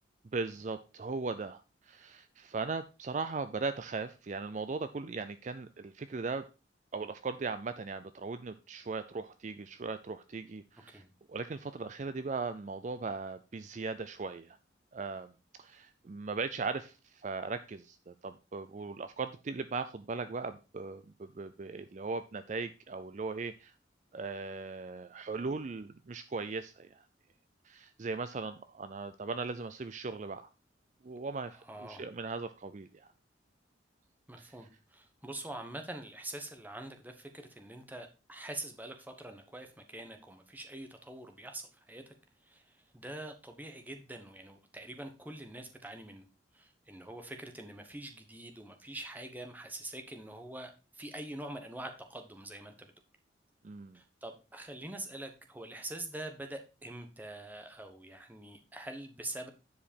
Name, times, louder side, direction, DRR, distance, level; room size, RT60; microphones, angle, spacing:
voice 1, 0.3-6.5 6.9-11.0 11.3-14.6 14.9-15.3 15.6-23.7 24.1-27.1 27.6-30.5 31.0-33.1 34.4-34.5 53.6-54.0, right 4 dB, 40° right, 11 dB, 0.4 m, -38 dB
voice 2, 31.6-32.0 34.3-42.1 42.4-46.3 46.5-52.9 53.9-59.5, right 1 dB, 10° right, 5 dB, 1.1 m, -45 dB
10.0 x 4.9 x 4.3 m, 0.31 s
head